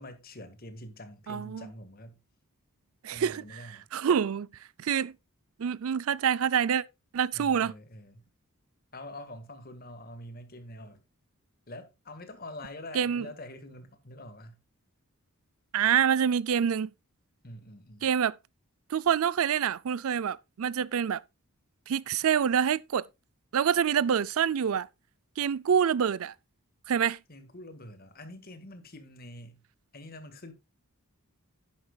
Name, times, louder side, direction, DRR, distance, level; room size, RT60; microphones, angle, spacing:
voice 1, 0.0-2.2 3.1-3.8 7.3-8.2 8.9-11.0 11.7-14.6 17.4-18.1 27.3-29.6 29.9-30.5, left 1 dB, 40° left, 1.6 m, -45 dB
voice 2, 1.3-1.7 3.0-4.5 4.8-5.1 5.6-6.8 7.1-7.7 12.9-13.3 15.7-16.9 18.0-18.4 18.9-21.2 21.9-23.0 23.5-24.9 25.4-26.3 26.9-27.2, right 8 dB, 70° right, 0.4 m, -26 dB
10.5 x 10.5 x 2.3 m
head